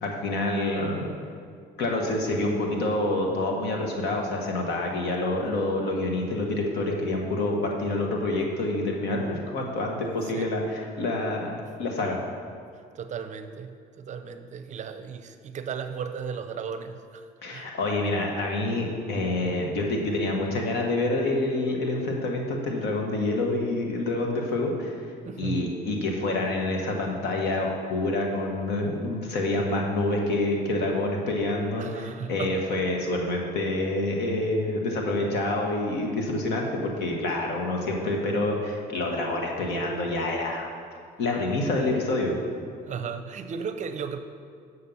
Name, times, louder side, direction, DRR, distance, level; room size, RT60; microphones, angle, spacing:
voice 1, 0.0-1.1 1.8-12.2 17.4-25.0 25.4-40.7 41.2-42.4, left 2 dB, 80° left, 0 dB, 1.4 m, -27 dB
voice 2, 12.9-17.7 19.6-19.7 25.2-25.6 31.8-32.5 42.9-44.2, right 6 dB, 45° right, 9 dB, 0.6 m, -35 dB
7.1 x 6.5 x 5.4 m, 2.2 s
cardioid pair, 110°, 17 cm